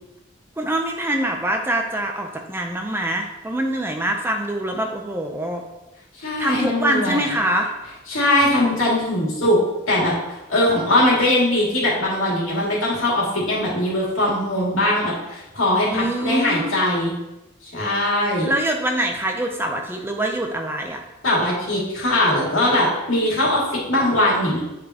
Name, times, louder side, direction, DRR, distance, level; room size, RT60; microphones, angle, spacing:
voice 1, 0.6-5.6 6.4-7.7 15.9-16.7 18.4-21.0, right 1 dB, 10° right, 3 dB, 0.5 m, -24 dB
voice 2, 6.2-7.2 8.1-9.6 9.9-17.1 17.6-18.5 21.2-24.6, left 1 dB, 80° left, -5 dB, 2.4 m, -21 dB
8.4 x 5.1 x 2.9 m, 0.99 s
head